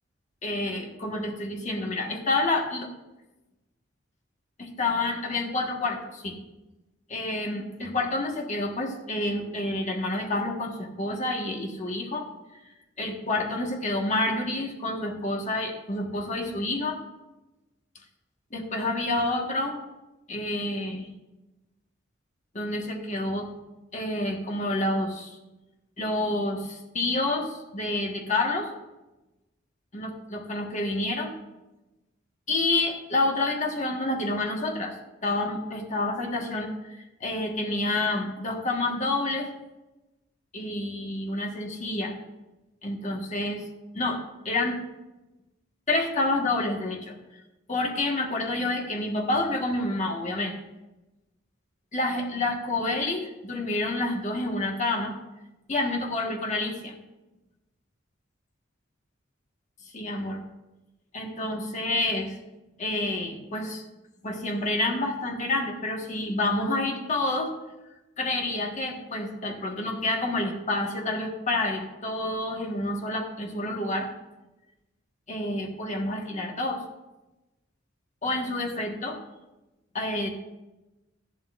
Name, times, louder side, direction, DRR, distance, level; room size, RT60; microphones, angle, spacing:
voice 1, 0.4-2.9 4.6-6.4 7.1-12.3 13.0-17.0 18.5-19.8 20.3-21.1 22.5-23.5 23.9-25.4 26.0-28.7 29.9-31.3 32.5-34.9 35.2-39.5 40.5-42.1 42.8-43.6 43.9-44.8 45.9-47.2 47.7-50.5 51.9-55.1 55.7-56.9 59.9-60.4 61.1-62.3 62.8-63.8 64.2-67.5 68.2-74.1 75.3-76.8 78.2-79.2 79.9-80.3, left 2 dB, 40° left, 1 dB, 1.6 m, -28 dB
14.0 x 11.5 x 2.6 m, 1.0 s
head